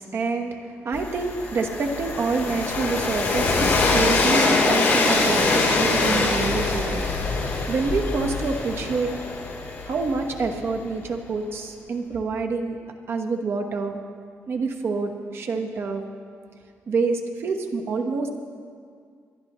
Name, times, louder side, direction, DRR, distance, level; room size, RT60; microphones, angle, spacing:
voice 1, 0.0-7.0 7.7-9.1 9.9-12.8 13.1-14.0 14.5-16.0 16.9-18.3, right 4 dB, 55° right, 4 dB, 1.2 m, -27 dB
Train, 0.9-10.8, left 3 dB, 45° left, 3.3 m, -23 dB
27.0 x 10.5 x 3.1 m, 2.1 s
cardioid pair, 120°, 5 cm